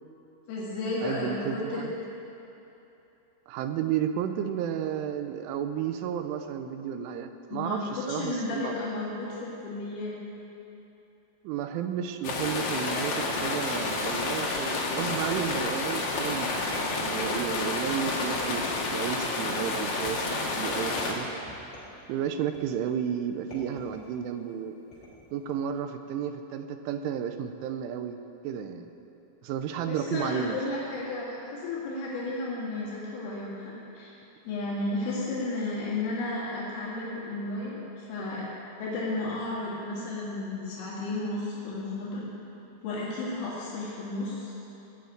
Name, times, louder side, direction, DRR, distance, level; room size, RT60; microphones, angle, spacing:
voice 1, 0.5-1.8 7.5-10.2 29.9-34.1 34.5-38.5 38.8-42.3 42.8-44.5, left 2 dB, 75° left, -7 dB, 4.8 m, -33 dB
voice 2, 1.0-1.9 3.5-8.8 11.4-21.3 22.1-24.8 25.3-28.2 28.4-28.9 29.4-30.6, right 9 dB, 80° right, 8 dB, 3.1 m, -32 dB
sound 1, 12.2-21.1, left 3 dB, 60° left, 2.8 m, -30 dB
sound 2, 16.7-17.7 18.3-19.2 20.1-20.5 21.0-22.0 22.5-22.9 23.5-24.2 24.9-25.4, left 2 dB, 30° left, 3.7 m, -45 dB
19.0 x 6.9 x 9.2 m, 2.9 s
omnidirectional pair, 5.8 m